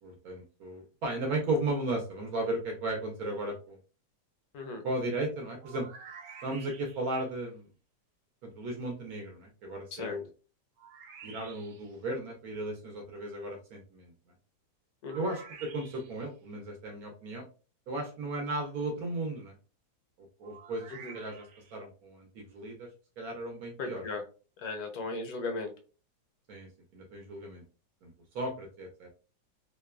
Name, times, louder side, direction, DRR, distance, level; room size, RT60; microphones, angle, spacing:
voice 1, 0.0-3.8 4.8-5.9 6.4-7.7 8.4-10.3 11.2-14.1 15.1-17.4 17.9-19.5 20.2-21.5 21.7-22.9 23.2-24.0 26.5-27.6 28.0-29.1, right 2 dB, 70° right, 2 dB, 1.1 m, -35 dB
sound 1, 5.6-7.2 10.8-11.9 15.1-16.3 20.4-21.7, right 6 dB, 90° right, 1.2 m, -50 dB
voice 2, 23.8-24.2 24.6-25.7, left 3 dB, 70° left, 4 dB, 1.1 m, -36 dB
2.9 x 2.2 x 2.2 m, 0.34 s
omnidirectional pair, 1.8 m